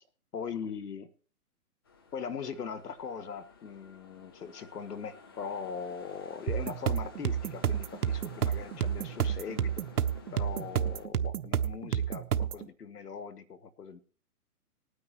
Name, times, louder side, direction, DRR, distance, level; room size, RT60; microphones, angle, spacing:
voice 1, 0.3-1.1 2.1-9.8 10.3-14.0, left 6 dB, 90° left, 14 dB, 1.3 m, -40 dB
sound 1, 1.8-11.1, left 5 dB, 15° left, 0.4 m, -52 dB
sound 2, 6.5-12.7, right 9 dB, 75° right, 1.0 m, -30 dB
19.5 x 9.5 x 3.0 m, 0.39 s
hypercardioid pair, 145°, 46 cm